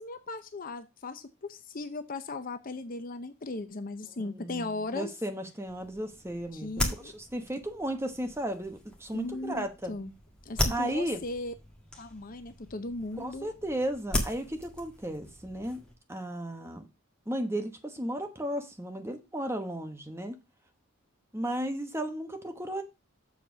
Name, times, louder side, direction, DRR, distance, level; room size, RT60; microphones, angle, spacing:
voice 1, 0.0-5.1 6.5-7.1 9.1-10.1 10.4-11.5 12.0-13.5, left 2 dB, 40° left, 0.7 m, -37 dB
voice 2, 4.2-4.7 4.9-6.7 7.0-9.9 10.7-11.2 13.2-15.8 16.1-16.9 17.3-20.4 21.3-22.8, right 1 dB, 10° right, 1.1 m, -34 dB
sound 1, 5.6-16.0, left 1 dB, 5° left, 1.7 m, -37 dB
7.3 x 4.4 x 6.2 m
head